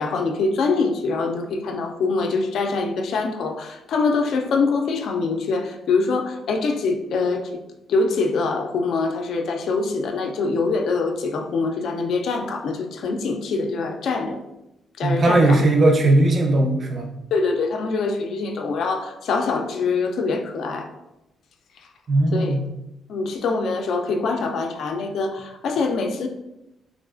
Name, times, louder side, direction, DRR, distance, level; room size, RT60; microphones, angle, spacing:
voice 1, 0.0-7.6 7.9-14.4 15.0-15.6 17.3-20.9 22.3-22.6 23.1-26.3, left 4 dB, 70° left, 3 dB, 0.4 m, -24 dB
voice 2, 15.0-17.1 22.1-22.7, right 2 dB, 40° right, 1 dB, 0.5 m, -18 dB
3.6 x 2.3 x 2.4 m, 0.91 s
cardioid pair, 115°, 0 cm